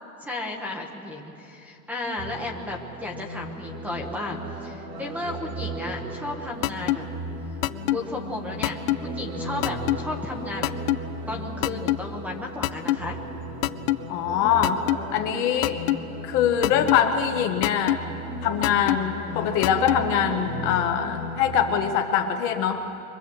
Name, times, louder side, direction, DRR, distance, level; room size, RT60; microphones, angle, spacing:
voice 1, 0.2-7.0 7.9-10.7 11.3-13.2, left 2 dB, 5° right, 2 dB, 0.8 m, -34 dB
sound 1, 2.2-21.9, right 1 dB, 65° right, 3.5 m, -36 dB
sound 2, 6.6-7.0 7.6-8.0 8.6-9.0 9.6-10.0 10.6-11.0 11.6-12.0 12.6-13.0 13.6-14.0 14.6-15.0 15.6-16.0 16.6-17.0 17.6-18.0 18.6-19.0 19.6-20.0, left 17 dB, 60° left, 0.7 m, -22 dB
voice 2, 14.1-14.8 15.1-15.8 16.2-18.0 18.4-22.8, left 8 dB, 30° left, 4 dB, 0.8 m, -23 dB
24.5 x 21.0 x 7.6 m, 2.7 s
supercardioid pair, 180°, 44 cm